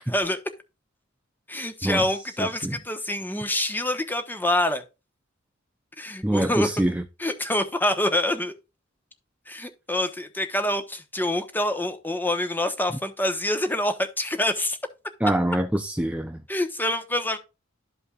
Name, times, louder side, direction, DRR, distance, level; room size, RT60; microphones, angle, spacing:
voice 1, 0.1-0.4 1.5-4.8 6.0-6.9 7.2-8.5 9.5-14.8 16.5-17.4, left 1 dB, 10° left, 1.1 m, -26 dB
voice 2, 2.4-2.8 6.2-7.0 15.2-16.4, right 1 dB, 5° right, 0.5 m, -25 dB
13.0 x 5.3 x 2.4 m
head